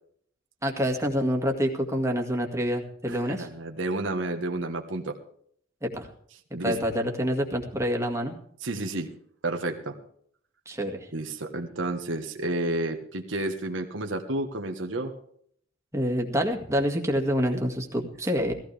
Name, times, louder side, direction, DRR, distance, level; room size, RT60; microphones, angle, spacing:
voice 1, 0.6-3.5 5.8-6.1 6.6-8.4 10.7-11.1 15.9-18.5, equal, 15° right, 2 dB, 2.1 m, -27 dB
voice 2, 3.1-5.2 6.5-6.8 8.6-9.1 9.4-10.0 11.1-15.1 17.5-17.6, right 2 dB, 75° right, 4 dB, 1.5 m, -31 dB
16.5 x 15.0 x 3.5 m, 0.63 s
head